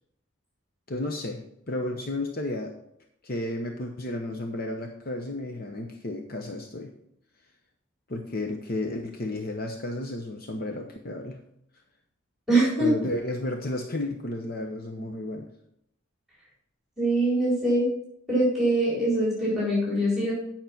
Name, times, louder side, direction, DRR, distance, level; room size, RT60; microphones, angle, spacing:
voice 1, 0.9-1.4 1.7-2.7 3.2-6.9 8.1-11.4 12.8-15.5, left 1 dB, 45° left, 3 dB, 0.8 m, -32 dB
voice 2, 12.5-12.9 17.0-17.9 18.3-20.3, right 1 dB, ahead, -7 dB, 4.3 m, -23 dB
9.3 x 5.9 x 5.9 m, 0.75 s
head